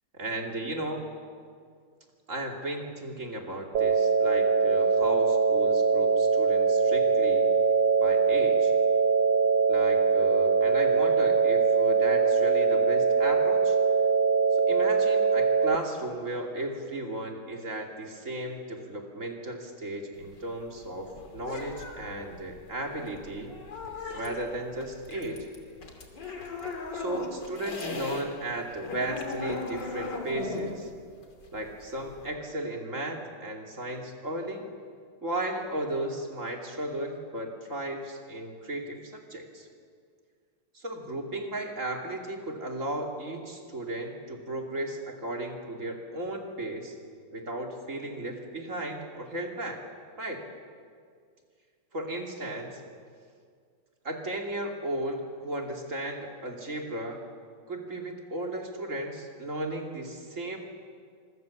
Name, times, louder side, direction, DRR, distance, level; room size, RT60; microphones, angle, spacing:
voice 1, 0.1-1.0 2.3-7.5 8.0-8.7 9.7-13.8 14.7-23.5 24.1-25.5 26.9-30.9 31.5-34.7 35.2-39.7 40.7-46.9 47.3-49.8 50.2-50.4 51.9-52.8 54.0-57.2 57.7-60.6, right 1 dB, 45° right, 1 dB, 3.1 m, -35 dB
sound 1, 3.7-15.7, right 5 dB, 85° right, 1.6 m, -22 dB
sound 2, 20.1-28.2 28.6-32.3, left 4 dB, 80° left, 3.5 m, -38 dB
26.0 x 24.0 x 7.3 m, 2.1 s
omnidirectional pair, 1.9 m